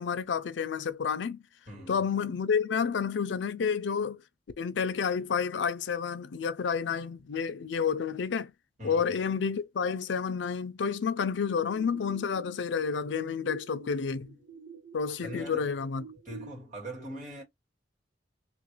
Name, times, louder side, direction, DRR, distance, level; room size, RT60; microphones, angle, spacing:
voice 1, 0.0-1.4 1.9-4.2 4.6-8.5 8.8-14.4 14.9-16.0, left 6 dB, 90° left, 0.4 m, -30 dB
voice 2, 1.7-2.0 8.8-9.2 15.2-15.7 16.2-17.4, right 1 dB, 45° right, 2.1 m, -42 dB
sound 1, 11.5-16.5, right 4 dB, 65° right, 1.4 m, -49 dB
3.1 x 2.5 x 2.9 m
head